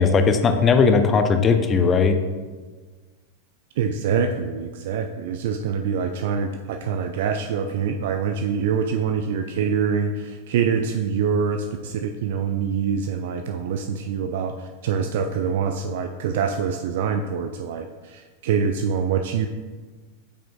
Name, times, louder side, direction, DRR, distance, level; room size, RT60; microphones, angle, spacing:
voice 1, 0.0-2.2, left 5 dB, 25° left, 7 dB, 0.5 m, -18 dB
voice 2, 3.8-19.5, right 6 dB, 55° right, 5 dB, 0.3 m, -25 dB
8.8 x 5.0 x 2.3 m, 1.4 s
figure-of-eight pair, 90°, 0 cm